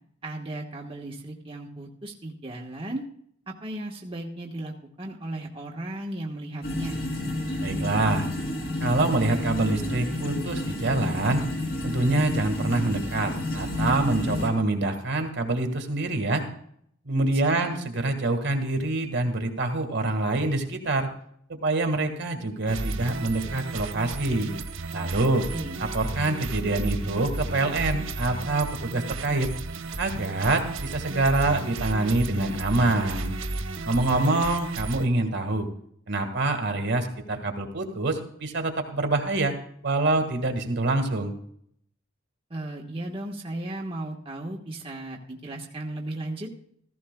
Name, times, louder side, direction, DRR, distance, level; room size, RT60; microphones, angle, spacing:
voice 1, 0.2-3.0 3.5-4.7 5.0-7.0 17.3-17.8 25.5-25.8 34.1-34.4 42.5-46.5, right 1 dB, 25° right, -2 dB, 1.2 m, -35 dB
sound 1, 6.6-14.5, left 1 dB, 50° left, 3.2 m, -30 dB
voice 2, 7.6-8.3 8.8-11.4 11.8-16.4 17.1-21.1 21.5-24.5 24.9-25.4 25.9-29.5 30.0-33.3 33.9-35.7 36.1-39.5 39.8-41.3, right 2 dB, 60° right, 5 dB, 1.7 m, -25 dB
sound 2, 22.7-35.1, right 2 dB, 90° right, 0.9 m, -33 dB
15.5 x 15.0 x 2.3 m, 0.67 s
head